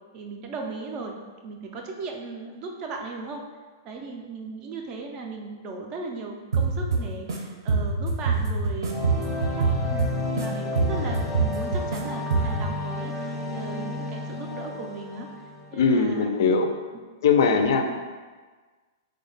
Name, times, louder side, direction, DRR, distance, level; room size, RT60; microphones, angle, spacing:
voice 1, 0.1-1.2 1.4-3.4 3.8-15.3 15.7-16.4 17.8-18.0, right 3 dB, 25° right, 2 dB, 0.3 m, -37 dB
sound 1, 6.5-7.4 7.7-10.5 10.8-12.0 12.3-12.7, right 4 dB, 70° right, 0.6 m, -25 dB
sound 2, 8.9-15.8, left 2 dB, 5° left, 0.7 m, -32 dB
voice 2, 15.7-16.7 17.2-18.0, left 5 dB, 60° left, 5 dB, 0.4 m, -21 dB
3.4 x 2.1 x 3.9 m, 1.4 s
hypercardioid pair, 170°, 2 cm